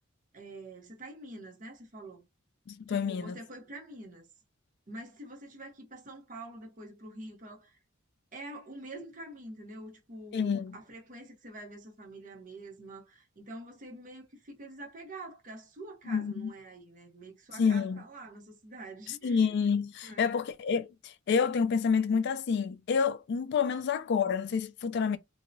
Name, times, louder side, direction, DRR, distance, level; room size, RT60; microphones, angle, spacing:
voice 1, 0.3-2.3 2.9-4.3 4.9-7.8 8.3-19.5 20.0-20.4, right 1 dB, 40° right, 0.8 m, -46 dB
voice 2, 2.7-3.4 10.3-10.8 16.1-16.5 17.6-18.0 19.2-25.2, left 6 dB, 55° left, 0.3 m, -28 dB
2.7 x 2.0 x 2.5 m
head